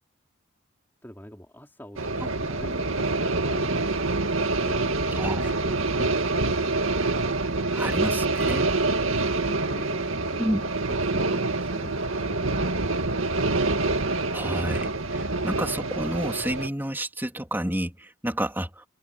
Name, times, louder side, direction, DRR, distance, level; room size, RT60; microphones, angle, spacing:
voice 1, 1.0-6.8 8.9-13.1, equal, 10° left, 5.0 m, -45 dB
sound 1, 2.0-16.7, right 3 dB, 75° right, 2.1 m, -26 dB
voice 2, 5.1-5.4 7.7-8.7 10.4-10.6 14.3-18.9, right 1 dB, 10° right, 3.2 m, -30 dB
head